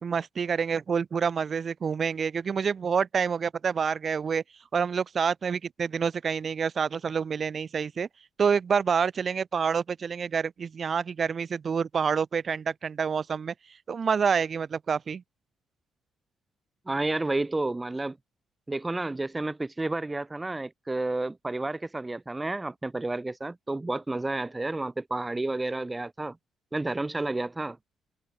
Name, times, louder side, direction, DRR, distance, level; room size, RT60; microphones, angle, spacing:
voice 1, 0.0-4.4 4.7-8.1 8.4-13.5 13.9-15.2, right 6 dB, 45° right, 1.1 m, -27 dB
voice 2, 16.9-18.2 18.7-26.4 26.7-27.8, right 2 dB, 15° right, 0.6 m, -31 dB
cardioid pair, 90°, 0 cm